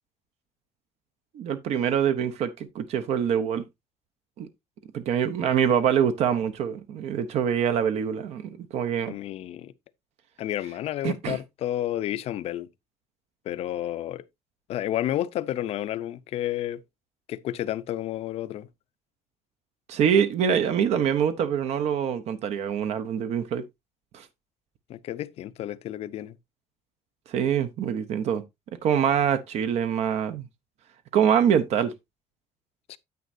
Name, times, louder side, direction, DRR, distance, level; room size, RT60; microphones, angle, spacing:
voice 1, 1.3-3.6 4.4-4.5 4.9-9.1 11.0-11.4 19.9-23.6 24.1-24.3 27.3-28.4 28.8-30.5 31.1-31.9, right 8 dB, 60° right, 0.8 m, -24 dB
voice 2, 9.1-9.7 10.4-12.7 13.4-14.2 14.7-16.8 17.3-18.7 24.9-26.4 32.9-33.0, left 12 dB, 55° left, 0.6 m, -31 dB
9.3 x 8.4 x 2.6 m
cardioid pair, 175°, 12 cm